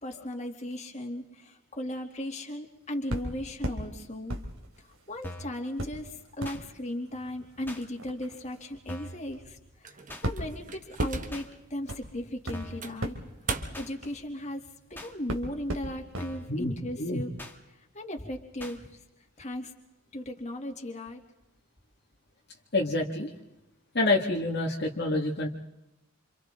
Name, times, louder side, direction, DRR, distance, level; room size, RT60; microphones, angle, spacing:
voice 1, 0.0-4.4 5.1-10.0 10.2-13.2 13.8-14.6 14.9-17.3 17.7-19.0 19.4-19.7 20.1-21.2, left 1 dB, 35° left, 2 dB, 2.7 m, -37 dB
sound 1, 3.1-3.8 4.3-5.3 5.8-14.9 15.3-16.3 16.6-16.7, right 1 dB, 85° right, 3.3 m, -37 dB
sound 2, 5.2-5.6 6.4-6.6 7.7-7.8 8.9-9.2 10.1-10.3 11.3-11.5 12.5-12.9 13.7-13.9 15.0-15.1 16.2-16.5 17.4-17.6 18.6-18.8, equal, 10° left, 2.0 m, -41 dB
sound 3, 9.8-11.6 12.1-12.2 12.8-14.0, right 6 dB, 40° right, 1.5 m, -40 dB
voice 2, 16.5-17.2 22.7-23.3 23.9-25.5, left 2 dB, 50° left, -1 dB, 2.1 m, -27 dB
28.5 x 27.5 x 3.8 m, 0.93 s
head